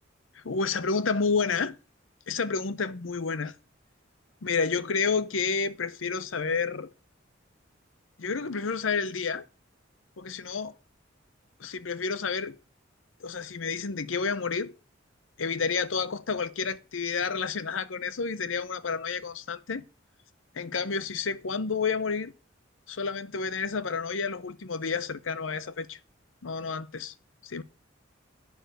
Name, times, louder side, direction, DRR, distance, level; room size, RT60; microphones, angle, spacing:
voice 1, 0.3-1.8 2.3-3.5 4.4-6.9 8.2-9.4 10.2-10.7 11.6-12.6 13.2-14.7 15.4-19.8 20.5-22.3 22.9-26.0 26.4-27.1 27.4-27.6, left 5 dB, 85° left, 0.8 m, -30 dB
10.5 x 4.8 x 7.9 m
head